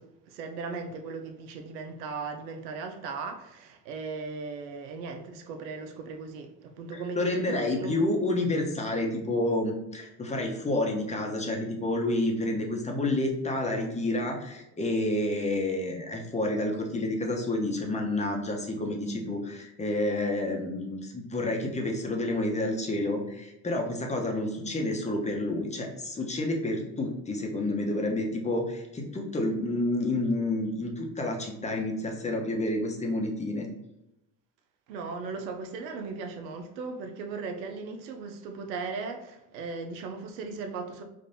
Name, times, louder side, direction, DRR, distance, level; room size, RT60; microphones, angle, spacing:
voice 1, 0.0-8.0 34.9-41.0, right 4 dB, 85° right, 0.8 m, -37 dB
voice 2, 7.1-33.7, left 1 dB, 15° left, 0.8 m, -29 dB
5.2 x 2.6 x 2.7 m
supercardioid pair, 95°, 49 cm